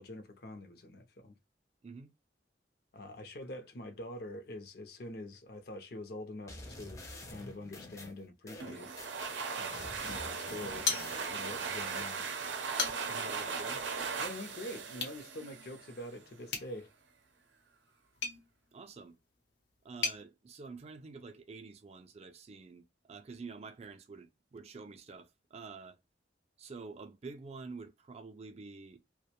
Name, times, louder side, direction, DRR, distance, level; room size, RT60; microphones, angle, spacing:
voice 1, 0.0-1.3 2.9-7.0 7.3-8.9 9.6-12.2 14.2-16.9, left 1 dB, 60° left, 0.6 m, -45 dB
sound 1, 6.5-9.3 9.7-12.1, left 2 dB, 20° left, 0.5 m, -48 dB
sound 2, 8.6-16.1, right 5 dB, 85° right, 0.5 m, -38 dB
sound 3, 10.8-11.6 12.0-12.1 12.6-13.3 14.9-15.2 16.5-20.2, left 5 dB, 90° left, 0.8 m, -38 dB
voice 2, 13.1-13.9 18.7-19.2 19.8-26.0 26.6-29.0, right 4 dB, 35° right, 0.4 m, -48 dB
2.5 x 2.1 x 2.8 m
head